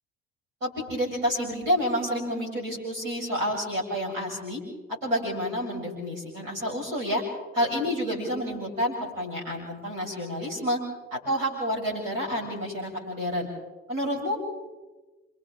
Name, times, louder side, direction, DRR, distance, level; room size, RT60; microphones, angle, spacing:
voice 1, 0.6-4.6 5.0-7.2 7.5-10.8 11.1-13.5 13.9-14.4, equal, 80° right, -3 dB, 7.8 m, -29 dB
29.5 x 26.5 x 3.8 m, 1.2 s
figure-of-eight pair, 55°, 38 cm